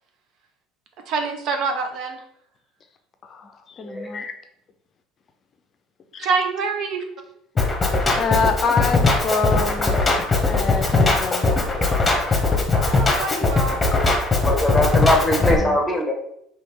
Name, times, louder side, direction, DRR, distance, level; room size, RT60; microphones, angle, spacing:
voice 1, 1.1-2.2 6.2-7.0 12.7-13.8, right 4 dB, 60° right, 5 dB, 0.7 m, -25 dB
voice 2, 3.2-4.3 6.1-6.3 8.2-10.0 10.4-11.5 15.4-15.8, left 4 dB, 40° left, 6 dB, 0.5 m, -26 dB
Drum kit, 7.6-15.6, left 3 dB, 20° left, 1.0 m, -20 dB
voice 3, 14.4-16.1, left 1 dB, 5° left, 1 dB, 1.3 m, -21 dB
3.3 x 3.0 x 4.6 m, 0.74 s
hypercardioid pair, 75°, 0 cm